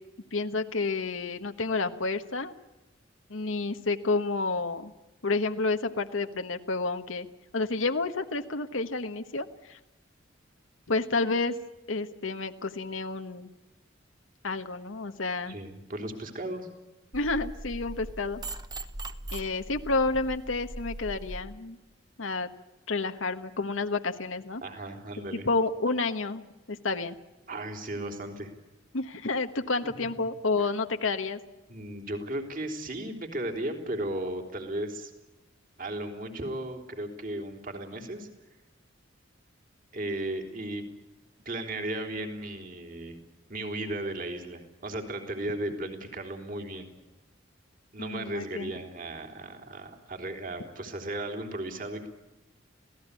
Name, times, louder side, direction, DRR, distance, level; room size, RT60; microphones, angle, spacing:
voice 1, 0.3-2.5 3.3-4.9 5.2-7.3 7.5-9.8 10.9-11.6 11.9-13.5 14.4-15.6 17.1-18.4 19.3-21.8 22.2-22.5 22.9-24.6 25.3-26.4 26.7-27.2 28.9-31.4 48.0-48.7, left 3 dB, 85° left, 7 dB, 1.3 m, -30 dB
voice 2, 15.5-16.7 24.6-25.5 27.5-28.5 29.8-29.9 31.7-35.1 35.8-38.3 39.9-40.8 41.4-43.2 43.5-46.9 47.9-52.1, right 1 dB, 45° right, 5 dB, 3.5 m, -35 dB
sound 1, 17.1-21.4, right 1 dB, 20° right, 1.0 m, -40 dB
26.5 x 17.5 x 8.3 m, 1.0 s
head